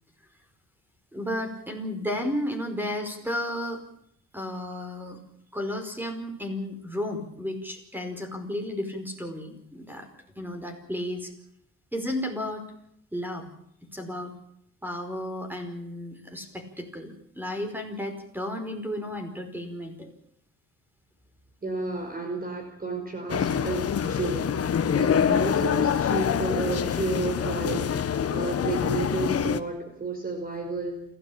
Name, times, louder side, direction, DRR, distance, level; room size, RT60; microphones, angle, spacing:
voice 1, 1.1-3.8 4.3-5.2 5.5-10.1 10.3-11.3 11.9-12.7 13.1-13.5 13.8-14.3 14.8-20.1 25.2-25.5, left 1 dB, 5° right, 5 dB, 5.0 m, -33 dB
voice 2, 21.6-24.5 24.9-31.0, right 3 dB, 30° right, 4 dB, 5.3 m, -32 dB
sound 1, 23.3-29.6, left 8 dB, 50° left, 1.5 m, -25 dB
28.0 x 14.0 x 8.8 m, 0.73 s
cardioid pair, 90°, 30 cm